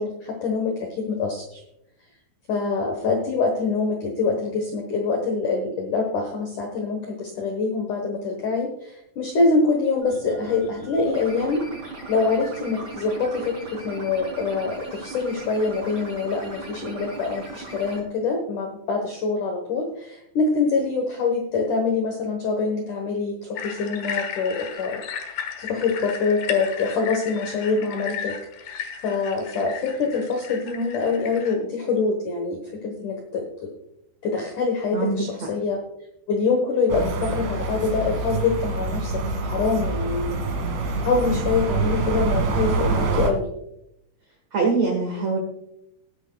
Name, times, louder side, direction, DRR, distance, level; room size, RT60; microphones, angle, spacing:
voice 1, 0.0-1.6 2.5-11.6 12.1-28.3 28.7-28.8 29.0-33.7 34.2-35.8 36.3-40.4 41.0-43.5, left 4 dB, 80° left, 3 dB, 1.7 m, -25 dB
sound 1, 10.0-18.0, right 3 dB, 20° right, 3.3 m, -38 dB
sound 2, 23.6-31.6, left 7 dB, 65° left, 2.6 m, -35 dB
voice 2, 34.9-35.5 44.5-45.4, right 4 dB, 85° right, 2 dB, 1.5 m, -23 dB
sound 3, 36.9-43.3, right 3 dB, 55° right, 2.2 m, -25 dB
19.0 x 9.8 x 2.3 m, 0.79 s
omnidirectional pair, 5.6 m